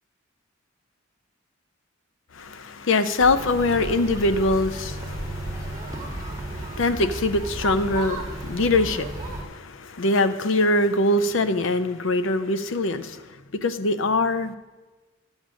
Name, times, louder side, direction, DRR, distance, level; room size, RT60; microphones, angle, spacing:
voice 1, 2.3-13.4 13.6-14.6, left 2 dB, 70° left, 11 dB, 0.6 m, -23 dB
sound 1, 3.2-9.4, right 2 dB, 20° right, 1.4 m, -33 dB
11.5 x 7.2 x 6.3 m, 1.2 s
head